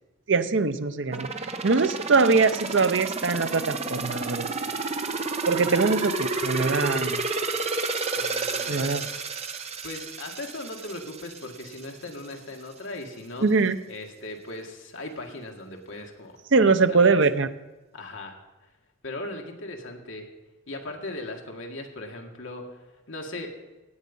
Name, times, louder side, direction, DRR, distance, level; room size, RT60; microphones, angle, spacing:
voice 1, 0.3-1.3 1.6-4.5 5.5-7.3 8.7-9.0 13.4-13.8 16.5-17.5, right 4 dB, 65° right, 11 dB, 0.7 m, -22 dB
sound 1, 1.1-11.9 12.2-12.3, right 3 dB, 30° right, 0.9 m, -31 dB
voice 2, 8.2-9.0 9.8-13.5 13.9-16.4 16.9-17.2 17.9-18.7 19.0-20.3 20.7-22.8 23.1-23.6, left 2 dB, 70° left, 2 dB, 2.0 m, -38 dB
16.5 x 8.5 x 5.4 m, 1.0 s
head